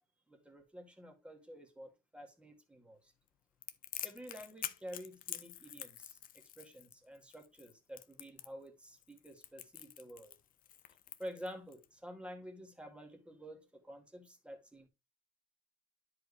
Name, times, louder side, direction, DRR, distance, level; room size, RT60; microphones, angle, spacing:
voice 1, 0.3-3.1 4.0-10.4 11.2-14.9, equal, 5° right, 2.0 m, -50 dB
Crackle, 3.6-11.9, left 11 dB, 55° left, 0.8 m, -47 dB
10.5 x 4.8 x 3.4 m
cardioid pair, 110°, 17 cm